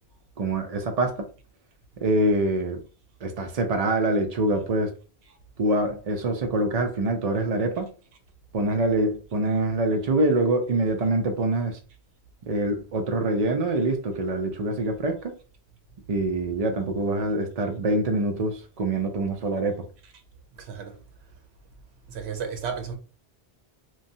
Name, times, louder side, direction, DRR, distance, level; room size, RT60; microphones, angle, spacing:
voice 1, 0.4-1.3 2.0-2.8 3.2-4.9 5.6-7.9 8.5-11.8 12.4-15.3 16.1-19.8, right 2 dB, 50° right, 0.5 m, -25 dB
voice 2, 20.6-21.0 22.1-22.9, right 6 dB, 80° right, 0.9 m, -33 dB
3.0 x 2.3 x 2.6 m
omnidirectional pair, 1.1 m